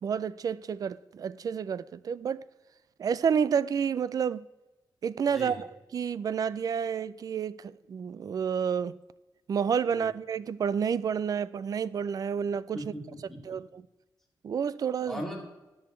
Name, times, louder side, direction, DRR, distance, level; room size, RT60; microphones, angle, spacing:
voice 1, 0.0-2.4 3.0-4.5 5.0-9.0 9.5-12.8 13.5-13.8 14.4-15.2, right 7 dB, 50° right, 0.3 m, -30 dB
voice 2, 12.7-13.4 15.1-15.4, equal, 5° left, 2.5 m, -38 dB
13.5 x 10.5 x 3.1 m
wide cardioid pair, 155°, 8 cm